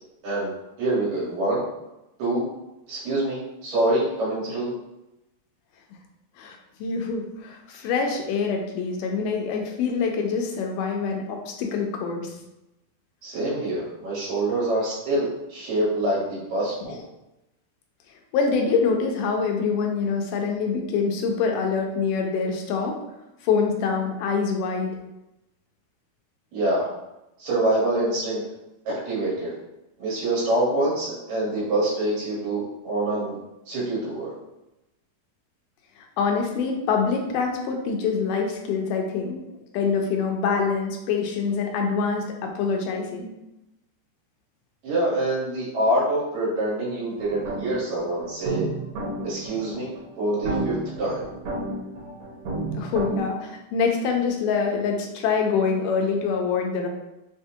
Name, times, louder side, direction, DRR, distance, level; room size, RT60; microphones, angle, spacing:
voice 1, 0.8-1.6 2.2-2.4 2.9-4.7 13.2-17.0 26.5-26.9 27.4-28.4 28.8-29.5 30.0-33.3 33.7-34.3 44.8-48.7 49.2-51.2, right 1 dB, 85° right, -7 dB, 3.2 m, -25 dB
voice 2, 6.8-12.3 16.8-16.9 18.3-23.0 23.4-25.0 36.0-43.3 52.8-56.9, left 5 dB, 80° left, 2 dB, 2.1 m, -25 dB
sound 1, 47.2-53.2, right 2 dB, 65° right, 2.3 m, -32 dB
6.1 x 2.2 x 2.7 m, 0.93 s
omnidirectional pair, 3.8 m